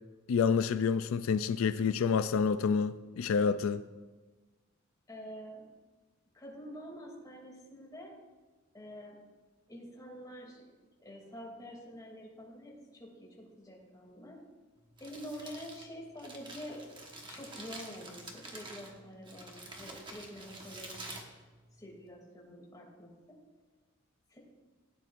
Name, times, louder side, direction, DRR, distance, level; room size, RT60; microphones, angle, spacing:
voice 1, 0.3-3.8, left 6 dB, 85° left, 0.3 m, -28 dB
voice 2, 5.1-5.6 6.3-8.1 8.7-9.2 9.7-10.6 11.0-14.4 15.0-16.8 17.3-21.0 21.7-23.4 24.3-24.4, equal, 20° left, 2.6 m, -47 dB
Crumpling crinkling, 14.8-22.1, right 2 dB, 25° right, 1.2 m, -48 dB
16.5 x 9.1 x 2.5 m
head